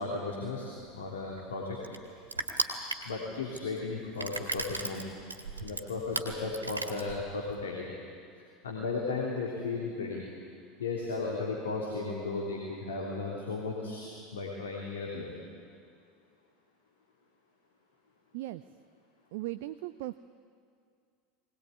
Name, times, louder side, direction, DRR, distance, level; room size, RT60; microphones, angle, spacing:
voice 1, 0.0-1.8 3.0-5.1 5.6-7.9 8.6-10.2 10.8-15.3, left 3 dB, 75° left, -2 dB, 3.3 m, -35 dB
Crushing, 0.8-7.6, right 2 dB, 90° right, 2.0 m, -37 dB
voice 2, 19.3-20.1, right 16 dB, 60° right, 12 dB, 0.5 m, -37 dB
21.5 x 19.0 x 9.6 m, 2.3 s
figure-of-eight pair, 75°, 0 cm